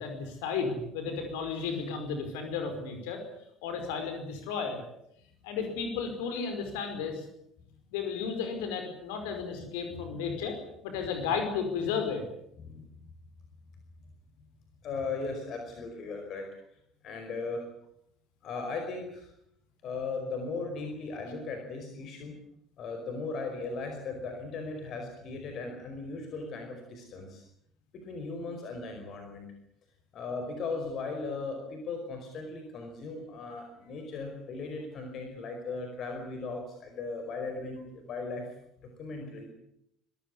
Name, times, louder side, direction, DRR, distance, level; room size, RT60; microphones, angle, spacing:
voice 1, 0.0-3.2 3.6-4.8 5.4-7.3 7.9-10.6 10.8-12.3, left 5 dB, 65° left, 6 dB, 5.1 m, -33 dB
voice 2, 9.2-10.1 12.6-12.9 14.8-16.5 17.0-17.6 18.4-19.3 19.8-22.4 22.8-27.4 27.9-29.5 30.1-38.4 38.8-39.5, left 3 dB, 45° left, 4 dB, 5.1 m, -37 dB
26.0 x 15.5 x 9.8 m, 0.74 s
figure-of-eight pair, 60°, 0 cm